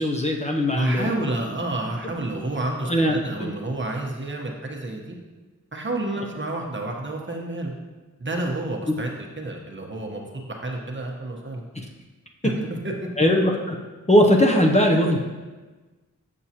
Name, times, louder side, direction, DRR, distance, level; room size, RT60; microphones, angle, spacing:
voice 1, 0.0-1.1 2.9-3.5 13.2-13.8 14.1-15.2, equal, 20° left, 0 dB, 0.6 m, -19 dB
voice 2, 0.7-5.1 5.7-7.7 8.2-11.6 12.4-13.1, right 2 dB, 35° right, 0 dB, 1.0 m, -30 dB
7.2 x 6.4 x 2.8 m, 1.3 s
wide cardioid pair, 85°, 32 cm